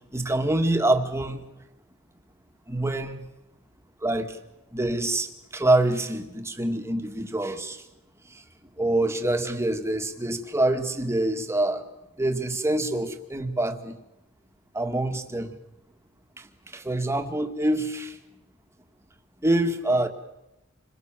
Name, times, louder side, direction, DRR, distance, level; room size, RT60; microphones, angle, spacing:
voice 1, 0.1-1.4 2.7-3.2 4.0-4.4 4.7-5.3 5.5-7.8 8.8-11.8 12.2-13.9 14.7-15.5 16.7-18.2 19.4-20.1, right 1 dB, 15° right, 6 dB, 2.0 m, -25 dB
27.5 x 22.0 x 7.5 m, 0.90 s
head